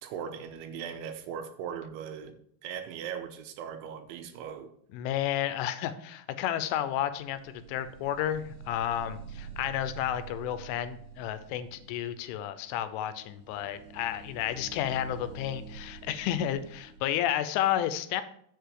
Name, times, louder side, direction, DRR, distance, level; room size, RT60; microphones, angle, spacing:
voice 1, 0.0-2.4 2.6-4.7, right 8 dB, 80° right, 6 dB, 3.1 m, -39 dB
voice 2, 4.9-18.2, left 11 dB, 90° left, 11 dB, 3.2 m, -31 dB
sound 1, 6.9-17.0, right 6 dB, 45° right, 3.3 m, -47 dB
7.2 x 6.9 x 4.7 m, 0.67 s
omnidirectional pair, 5.5 m